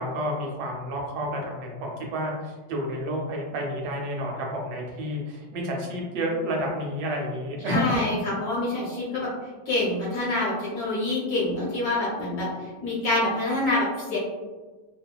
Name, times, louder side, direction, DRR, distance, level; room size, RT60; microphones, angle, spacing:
voice 1, 0.0-8.2, equal, 75° right, -1 dB, 1.2 m, -30 dB
voice 2, 7.6-9.3 9.7-12.5 12.8-14.2, left 2 dB, 70° left, -5 dB, 1.0 m, -26 dB
2.8 x 2.3 x 2.2 m, 1.3 s
omnidirectional pair, 2.0 m